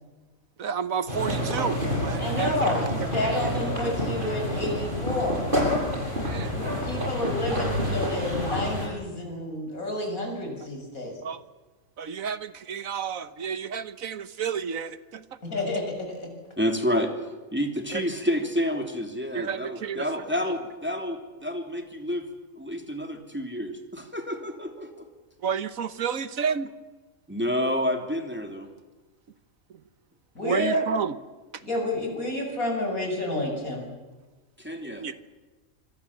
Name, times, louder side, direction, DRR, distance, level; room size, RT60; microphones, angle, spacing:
voice 1, 0.6-2.7 6.2-6.5 6.9-7.1 11.2-11.4 12.0-15.2 17.9-18.0 19.3-20.1 20.5-20.6 25.4-26.7 30.4-31.2 35.0-35.1, right 7 dB, 75° right, 13 dB, 1.5 m, -31 dB
sound 1, 1.1-8.9, equal, 35° right, 7.7 m, -28 dB
voice 2, 2.2-5.4 6.5-11.1 15.4-16.3 30.4-30.9 31.6-33.9, left 1 dB, 85° left, 2 dB, 7.2 m, -30 dB
voice 3, 16.6-17.1 17.5-22.3 22.6-25.1 27.3-28.7 34.6-35.0, equal, 10° right, 4 dB, 3.1 m, -29 dB
26.0 x 25.5 x 7.4 m, 1.2 s
omnidirectional pair, 1.4 m